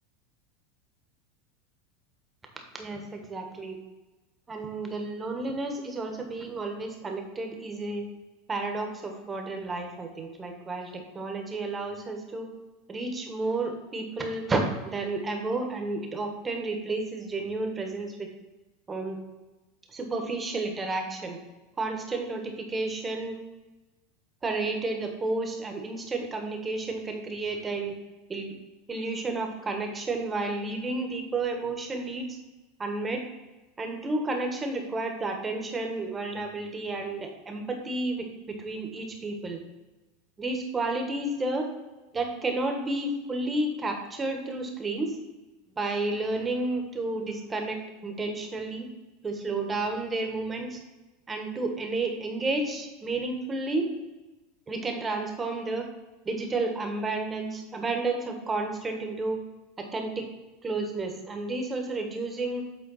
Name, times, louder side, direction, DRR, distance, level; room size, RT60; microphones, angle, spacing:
voice 1, 2.7-3.8 4.5-8.0 8.5-12.5 12.9-18.3 18.9-19.2 19.9-21.4 21.8-23.4 24.4-28.0 28.3-28.6 28.9-32.4 32.8-33.2 33.8-39.6 40.4-41.7 42.1-45.2 45.8-48.9 49.2-50.8 51.3-53.9 54.7-55.8 56.2-59.4 59.8-60.3 60.6-62.6, right 2 dB, 20° right, 3 dB, 1.2 m, -31 dB
8.0 x 3.9 x 4.1 m, 1.1 s
supercardioid pair, 120°, 0 cm